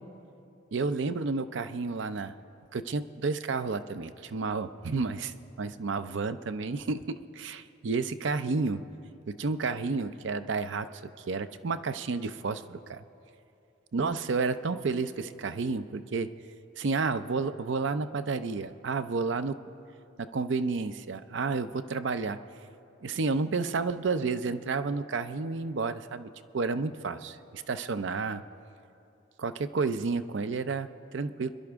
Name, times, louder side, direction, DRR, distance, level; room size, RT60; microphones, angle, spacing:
voice 1, 0.7-2.3 2.7-8.8 9.3-10.9 11.3-13.0 13.9-16.3 16.8-19.6 20.2-22.4 23.0-28.4 29.4-31.5, right 4 dB, 70° right, 12 dB, 0.5 m, -31 dB
29.0 x 11.0 x 3.5 m, 2.7 s
head